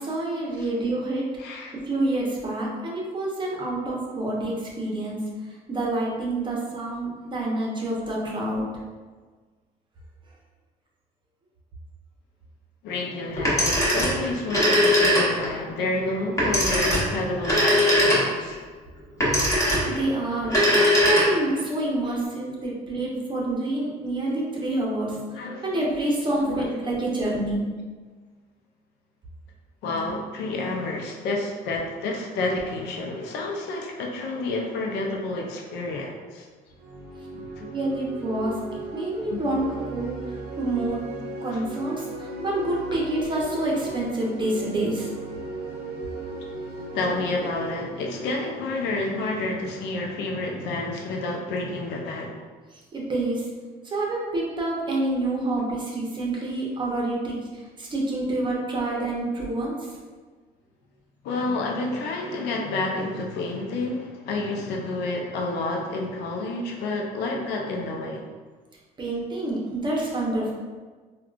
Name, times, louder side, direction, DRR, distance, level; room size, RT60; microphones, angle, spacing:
voice 1, 0.0-1.3 1.9-5.2 5.7-8.6 19.9-20.6 21.0-25.2 25.6-27.6 37.7-38.5 38.9-41.0 41.4-45.1 52.9-53.4 53.8-59.9 69.0-70.5, right 2 dB, 30° right, -3 dB, 0.7 m, -27 dB
voice 2, 1.4-1.7 12.8-18.6 19.2-19.4 22.1-22.2 25.3-25.8 26.4-26.7 29.8-36.5 37.3-37.7 39.3-39.4 41.5-41.6 46.9-52.4 61.2-68.2, left 2 dB, 85° left, 0 dB, 0.5 m, -29 dB
Telephone, 13.4-15.6 16.4-18.5 19.2-20.0 20.4-21.6, equal, 20° left, 0.9 m, -20 dB
sound 1, 36.7-49.3, right 2 dB, 75° right, 0.5 m, -37 dB
3.5 x 2.3 x 2.4 m, 1.4 s
cardioid pair, 110°, 17 cm